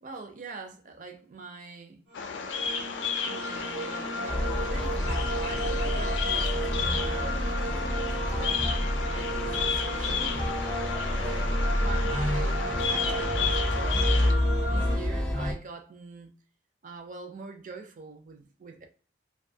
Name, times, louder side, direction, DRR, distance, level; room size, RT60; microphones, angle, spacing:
voice 1, 0.0-2.0 3.2-7.5 8.3-10.4 11.1-16.3 16.8-18.9, right 4 dB, 45° right, 0.5 m, -44 dB
Bird vocalization bird call bird song, 2.1-14.3, left 6 dB, 80° left, 0.4 m, -33 dB
sound 1, 2.1-15.0, right 1 dB, 85° right, 1.0 m, -35 dB
sound 2, 4.3-15.5, left 1 dB, 5° left, 0.5 m, -29 dB
2.6 x 2.3 x 2.6 m
head